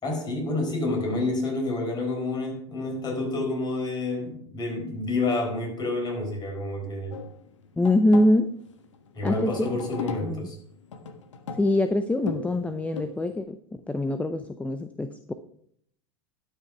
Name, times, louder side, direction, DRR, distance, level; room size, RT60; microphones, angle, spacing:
voice 1, 0.0-7.2 9.1-10.6, left 2 dB, 30° left, 1 dB, 4.6 m, -29 dB
sound 1, 7.1-13.4, left 5 dB, 90° left, 1.3 m, -38 dB
voice 2, 7.8-8.6 9.2-9.7 10.2-10.5 11.6-13.6 13.9-15.3, left 1 dB, 10° left, 9 dB, 0.7 m, -24 dB
12.0 x 6.5 x 5.7 m, 0.65 s
hypercardioid pair, 105°, 15 cm